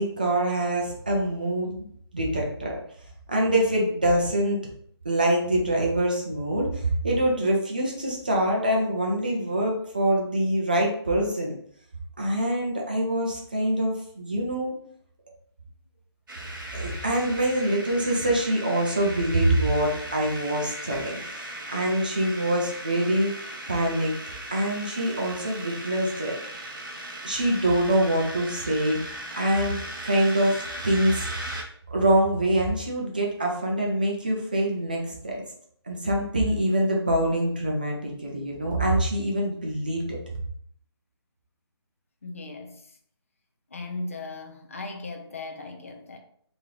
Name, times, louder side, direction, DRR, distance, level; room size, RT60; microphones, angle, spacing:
voice 1, 0.0-1.9 2.1-2.8 3.3-4.6 5.0-11.5 12.2-14.8 16.7-24.2 24.5-26.4 27.2-31.3 31.9-35.4 35.9-40.2, right 1 dB, 20° right, 0.4 m, -25 dB
sound 1, 16.3-31.6, right 1 dB, 50° right, 0.8 m, -38 dB
voice 2, 42.2-42.8 43.7-46.2, left 2 dB, 30° left, 0.5 m, -37 dB
3.1 x 2.9 x 3.7 m
hypercardioid pair, 175°, 14 cm